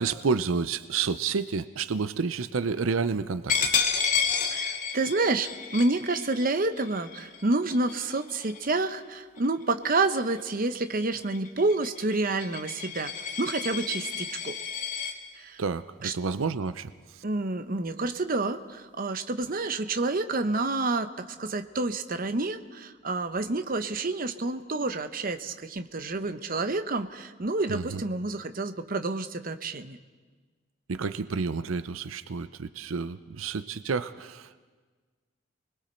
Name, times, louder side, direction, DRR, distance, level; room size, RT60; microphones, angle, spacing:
voice 1, 0.0-3.7 15.6-17.2 27.7-28.0 30.9-34.6, right 5 dB, 90° right, 13 dB, 0.6 m, -30 dB
Coin (dropping), 3.5-8.9 9.4-9.6 10.0-15.1, left 6 dB, 40° left, 1.9 m, -31 dB
voice 2, 4.5-13.1 13.4-14.5 15.4-15.6 16.0-16.1 17.2-30.0, right 2 dB, 45° right, 9 dB, 0.9 m, -29 dB
29.5 x 21.0 x 4.4 m, 1.4 s
head